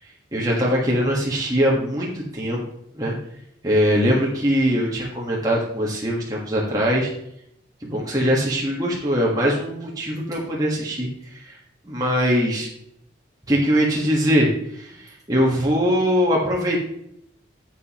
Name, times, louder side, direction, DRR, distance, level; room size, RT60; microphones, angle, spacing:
voice 1, 0.3-2.6 2.9-3.1 3.6-7.1 7.8-11.5 11.8-12.7 13.5-16.8, equal, 20° right, -4 dB, 1.5 m, -22 dB
10.5 x 7.5 x 3.0 m, 0.73 s
head